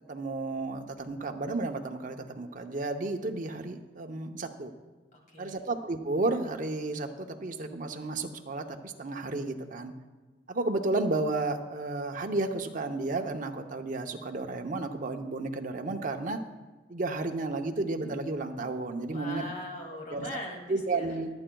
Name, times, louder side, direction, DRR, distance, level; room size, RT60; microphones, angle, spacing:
voice 1, 0.1-4.7 5.4-9.9 10.5-16.4 16.9-19.4 20.1-20.3 20.7-21.3, right 2 dB, 45° right, 4 dB, 0.8 m, -32 dB
voice 2, 5.1-5.7 19.1-21.2, left 1 dB, 45° left, 0 dB, 2.3 m, -41 dB
23.5 x 8.8 x 2.3 m, 1.3 s
head